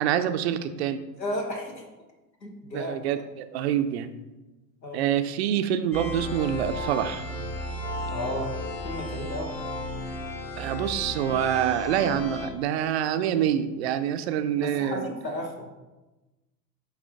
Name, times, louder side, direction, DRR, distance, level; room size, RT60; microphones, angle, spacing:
voice 1, 0.0-1.0 2.7-4.1 4.9-7.2 10.6-15.1, right 10 dB, 45° right, 10 dB, 0.4 m, -26 dB
voice 2, 1.2-1.8 2.4-3.0 4.8-5.0 8.1-8.6 8.8-9.6 14.6-15.7, left 1 dB, 85° left, 3 dB, 1.1 m, -33 dB
sound 1, 5.9-12.5, left 1 dB, 25° left, 1.7 m, -34 dB
8.5 x 3.3 x 3.6 m, 1.1 s
figure-of-eight pair, 85°, 50 cm